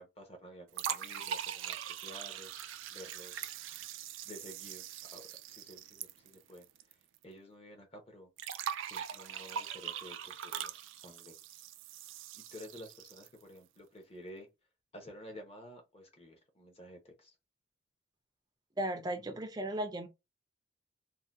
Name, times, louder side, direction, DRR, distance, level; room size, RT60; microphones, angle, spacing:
voice 1, 0.0-2.5 2.9-3.5 4.2-4.9 5.1-5.2 5.5-6.7 7.2-8.3 8.8-11.6 12.3-14.5 14.9-17.3, equal, 30° left, 0.8 m, -52 dB
sound 1, 0.7-6.9 7.2-7.3 8.4-13.4, right 9 dB, 80° right, 0.4 m, -42 dB
voice 2, 18.8-20.1, right 1 dB, 20° right, 0.4 m, -36 dB
2.7 x 2.2 x 3.3 m
head